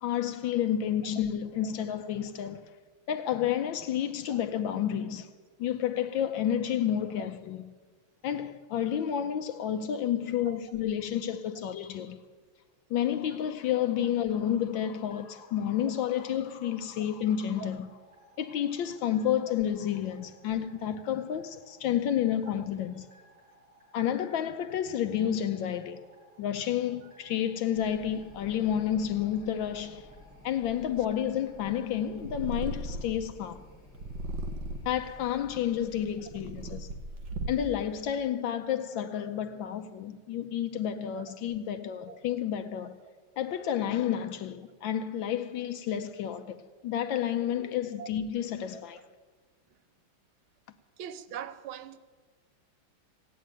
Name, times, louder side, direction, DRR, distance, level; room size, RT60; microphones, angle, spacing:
voice 1, 0.0-2.6 3.1-5.3 5.6-7.7 8.2-12.2 12.9-17.9 18.4-23.1 23.9-26.0 26.4-30.1 30.4-33.6 34.8-36.9 37.5-43.0 43.4-49.1, left 10 dB, 75° left, 1.3 m, -30 dB
sound 1, 14.9-32.2, right 1 dB, 40° right, 6.1 m, -60 dB
sound 2, 27.7-36.2, left 3 dB, 35° left, 2.0 m, -53 dB
Purr, 32.2-33.3 33.9-35.0 35.7-37.8, right 2 dB, 65° right, 1.7 m, -37 dB
voice 2, 51.0-52.0, right 8 dB, 90° right, 1.6 m, -41 dB
16.5 x 9.4 x 9.0 m
omnidirectional pair, 2.2 m